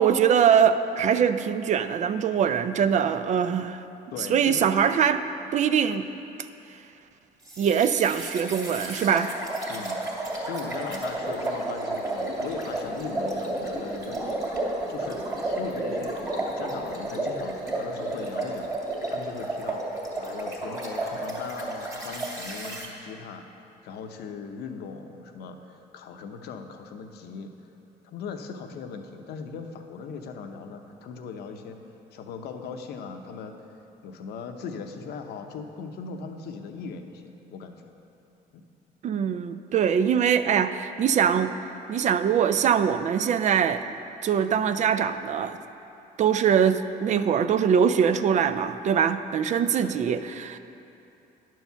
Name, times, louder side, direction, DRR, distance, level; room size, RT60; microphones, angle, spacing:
voice 1, 0.0-3.8 4.3-5.2 5.5-6.0 7.6-9.3 39.0-41.5 41.9-43.8 44.2-45.6 46.2-50.6, right 8 dB, 45° right, 11 dB, 0.4 m, -22 dB
voice 2, 4.1-4.6 9.7-16.2 16.5-23.5 23.8-27.5 28.0-31.8 32.1-33.6 34.0-37.9 38.5-38.6 49.8-50.0, left 5 dB, 75° left, 5 dB, 0.8 m, -39 dB
sound 1, 7.5-22.9, right 1 dB, 20° right, 2.1 m, -32 dB
10.0 x 4.6 x 6.9 m, 2.9 s
cardioid pair, 110°, 17 cm